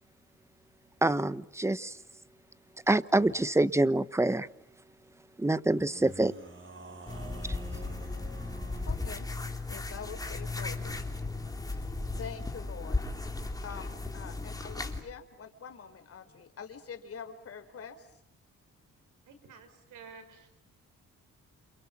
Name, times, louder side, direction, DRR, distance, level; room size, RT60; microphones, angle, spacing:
voice 1, 1.0-2.0 2.9-4.5 5.4-6.3, right 2 dB, 10° right, 16 dB, 1.1 m, -26 dB
sound 1, 3.2-3.7 5.8-9.2, right 2 dB, 40° right, 5.7 m, -48 dB
sound 2, 7.1-15.0, left 3 dB, 10° left, 3.4 m, -36 dB
voice 2, 8.9-9.3 9.7-11.0 12.2-13.0 13.6-18.0, left 6 dB, 50° left, 8 dB, 4.3 m, -45 dB
voice 3, 19.2-20.5, right 5 dB, 80° right, 9 dB, 5.9 m, -51 dB
28.5 x 28.0 x 7.4 m, 0.76 s
cardioid pair, 90°, 30 cm